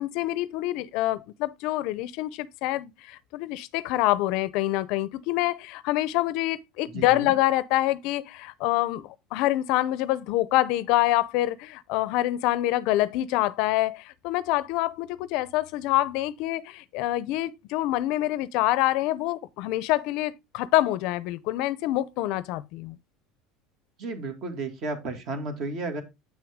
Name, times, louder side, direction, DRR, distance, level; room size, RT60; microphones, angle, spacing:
voice 1, 0.0-23.0, left 16 dB, 60° left, 0.5 m, -26 dB
voice 2, 6.9-7.3 24.0-26.0, right 3 dB, 40° right, 2.2 m, -33 dB
8.5 x 6.1 x 3.6 m
cardioid pair, 155°, 0 cm